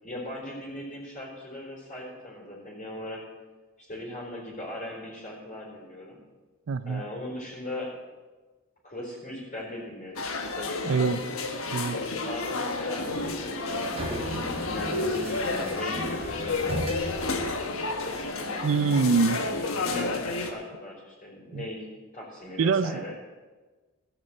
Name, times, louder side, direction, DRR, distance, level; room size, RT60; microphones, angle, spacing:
voice 1, 0.0-3.2 3.8-6.2 6.8-7.9 8.8-11.1 12.2-14.0 14.6-16.5 17.0-17.5 18.0-21.9 22.1-23.1, left 1 dB, 35° left, -4 dB, 4.0 m, -39 dB
voice 2, 6.7-7.0 10.8-11.2 11.7-12.0 18.6-19.4 21.5-21.7 22.6-23.2, right 4 dB, 70° right, 14 dB, 0.5 m, -24 dB
sound 1, 10.2-20.5, left 3 dB, 90° left, 1.3 m, -31 dB
sound 2, 13.4-18.2, equal, 30° right, 1.4 m, -37 dB
16.0 x 6.7 x 7.7 m, 1.3 s
head